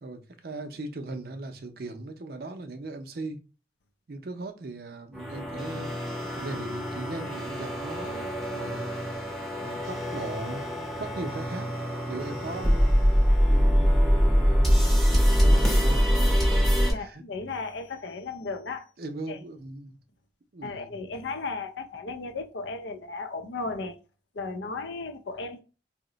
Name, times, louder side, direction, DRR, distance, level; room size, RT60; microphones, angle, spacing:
voice 1, 0.0-3.4 4.1-6.0 6.4-9.0 9.6-11.7 12.1-14.8 15.4-16.1 16.9-17.2 19.0-20.0 20.5-20.9, right 2 dB, 55° right, 0.5 m, -38 dB
sound 1, 5.1-16.9, equal, ahead, 0.6 m, -24 dB
voice 2, 16.9-18.9 19.3-19.4 20.6-24.0 24.3-25.6, left 3 dB, 80° left, 0.6 m, -35 dB
2.8 x 2.1 x 3.8 m
head